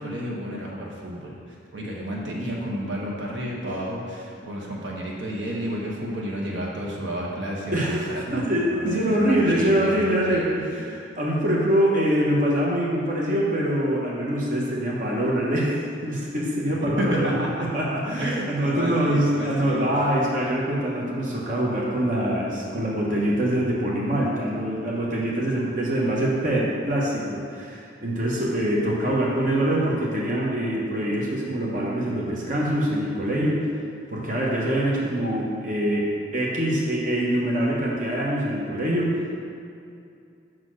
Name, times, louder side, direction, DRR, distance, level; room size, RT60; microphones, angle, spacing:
voice 1, 0.0-1.4 1.7-8.4 8.7-10.4 16.8-17.7 18.2-19.9, equal, 85° right, -3 dB, 1.2 m, -31 dB
voice 2, 7.7-33.7 34.1-39.3, right 1 dB, 45° right, -4 dB, 1.0 m, -24 dB
6.2 x 4.1 x 6.3 m, 2.5 s
head